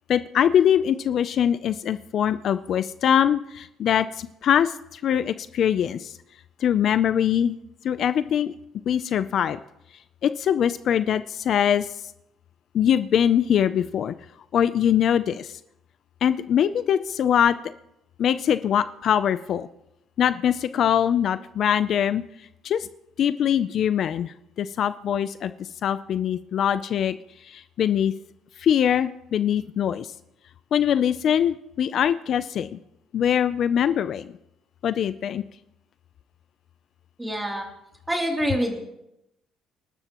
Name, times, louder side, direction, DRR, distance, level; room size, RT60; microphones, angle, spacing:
voice 1, 0.1-6.2 6.6-7.6 7.8-8.5 8.9-9.6 10.2-11.9 12.7-14.1 14.5-15.6 16.2-17.6 18.2-19.7 20.2-22.2 22.6-22.9 23.2-28.1 28.6-30.1 30.7-32.8 33.1-34.4 34.8-35.4, left 9 dB, 55° left, 13 dB, 0.5 m, -23 dB
voice 2, 37.2-37.7 38.1-38.8, equal, 10° right, 1 dB, 3.0 m, -26 dB
29.5 x 12.5 x 3.0 m, 0.85 s
cardioid pair, 125°, 0 cm